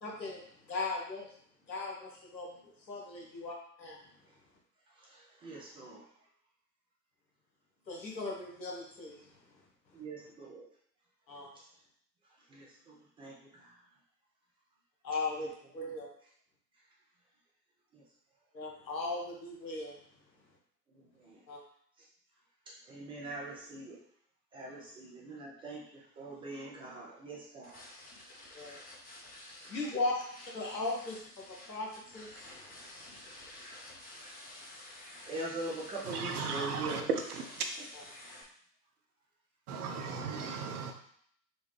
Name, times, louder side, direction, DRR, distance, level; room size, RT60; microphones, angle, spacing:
voice 1, 0.0-1.3 1.7-2.5 2.9-4.0 7.9-9.3 11.3-11.5 15.0-16.1 18.5-19.9 21.5-21.6 28.5-28.8 29.7-30.3 30.5-31.2 31.5-32.5, left 3 dB, 85° left, -1 dB, 1.1 m, -37 dB
voice 2, 5.0-6.0 9.9-10.6 12.5-13.8 17.9-18.0 20.9-21.4 22.9-24.0 24.5-27.8 35.2-37.0 40.2-40.8, right 2 dB, 10° right, -4 dB, 0.4 m, -43 dB
sound 1, 27.6-38.4, left 1 dB, 20° left, 0.8 m, -51 dB
voice 3, 36.0-37.6 39.7-40.9, right 5 dB, 65° right, 5 dB, 0.7 m, -36 dB
4.2 x 2.2 x 3.2 m, 0.64 s
figure-of-eight pair, 90°, 50 cm